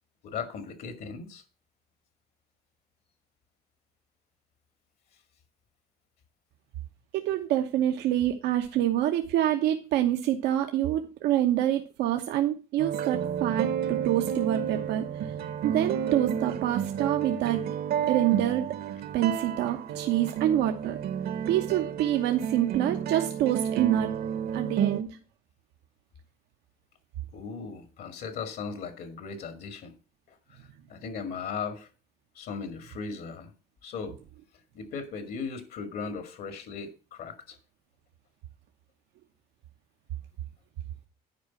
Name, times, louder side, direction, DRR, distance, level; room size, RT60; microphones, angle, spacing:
voice 1, 0.2-1.4 27.3-29.9 30.3-31.9 32.4-33.5 33.8-34.2 34.7-37.6, left 5 dB, 65° left, 8 dB, 2.1 m, -37 dB
voice 2, 7.1-15.3 15.6-17.7 18.1-18.7 19.1-21.0 21.5-24.1 24.5-25.2, right 12 dB, 85° right, 4 dB, 1.0 m, -26 dB
sound 1, 12.8-25.0, right 8 dB, 65° right, 1.1 m, -31 dB
10.5 x 4.9 x 7.2 m, 0.33 s
cardioid pair, 110°, 17 cm